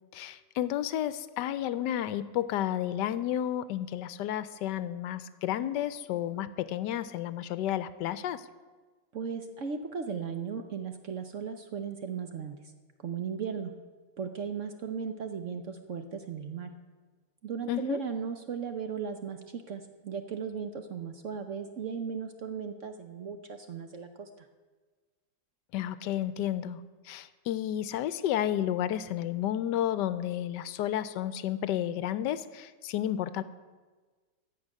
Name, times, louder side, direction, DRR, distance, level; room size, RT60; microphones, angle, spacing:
voice 1, 0.1-8.5 17.7-18.0 25.7-33.4, left 11 dB, 75° left, 15 dB, 1.1 m, -31 dB
voice 2, 9.1-12.6 13.0-13.7 14.2-16.7 17.4-24.5, right 6 dB, 60° right, 7 dB, 0.9 m, -36 dB
15.0 x 5.2 x 9.5 m, 1.4 s
omnidirectional pair, 1.9 m